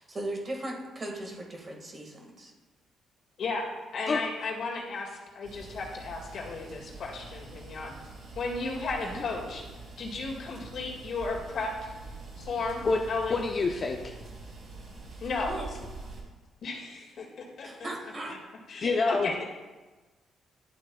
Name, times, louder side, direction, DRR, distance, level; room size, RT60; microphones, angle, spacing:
voice 1, 0.0-2.5 9.0-9.2 15.5-15.7 17.6-18.4, right 1 dB, 35° right, 1 dB, 1.7 m, -38 dB
voice 2, 3.4-7.9 8.4-9.6 10.0-11.7 12.4-12.8 13.1-13.4 15.2-15.5 16.6-17.9 18.7-19.4, left 3 dB, 60° left, -1 dB, 1.9 m, -34 dB
sound 1, 5.4-16.2, right 3 dB, 60° right, 2.1 m, -45 dB
voice 3, 13.3-14.1 18.8-19.3, left 3 dB, 40° left, 2 dB, 0.6 m, -26 dB
11.5 x 7.6 x 2.3 m, 1.2 s
cardioid pair, 90°, 0 cm